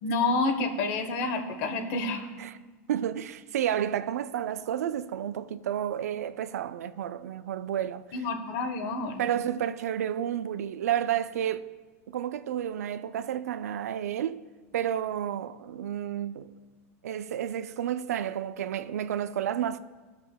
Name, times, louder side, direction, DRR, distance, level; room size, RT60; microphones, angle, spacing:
voice 1, 0.0-2.3 8.1-9.3, left 3 dB, 55° left, 1.1 m, -29 dB
voice 2, 2.9-8.0 9.2-11.7 12.1-14.4 14.7-16.5 17.0-19.8, right 10 dB, 85° right, 0.4 m, -31 dB
17.0 x 5.9 x 2.3 m
hypercardioid pair, 120°, 8 cm